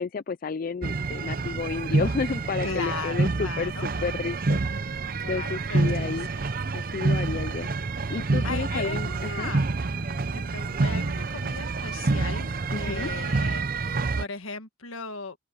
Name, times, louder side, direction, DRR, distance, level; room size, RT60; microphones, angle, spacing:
voice 1, 0.0-4.6 5.2-6.3 6.7-7.7 8.1-9.5 12.7-13.1, left 5 dB, 40° left, 0.3 m, -31 dB
sound 1, 0.8-14.2, right 3 dB, 40° right, 0.6 m, -27 dB
voice 2, 2.6-3.9 5.2-6.5 6.8-6.9 8.4-9.7 10.3-15.4, left 4 dB, 75° left, 1.7 m, -37 dB
open air
head